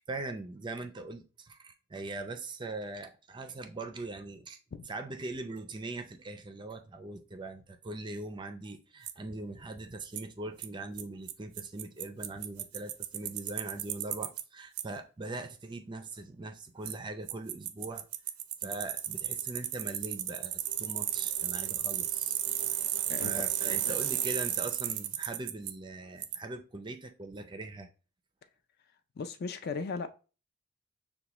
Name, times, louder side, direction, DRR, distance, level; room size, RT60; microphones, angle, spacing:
voice 1, 0.0-4.6 4.9-18.1 18.6-22.3 23.2-27.9, right 2 dB, 20° right, 0.4 m, -41 dB
Bicycle, 9.1-9.2 10.2-10.3 10.6-10.7 11.0-11.1 11.3-11.4 11.6-14.4 14.8-14.9 16.8-16.9 17.3-25.7 26.2-26.4, right 12 dB, 85° right, 0.4 m, -33 dB
voice 2, 23.1-24.0 29.2-30.1, left 4 dB, 45° left, 0.4 m, -38 dB
6.7 x 2.2 x 3.0 m
head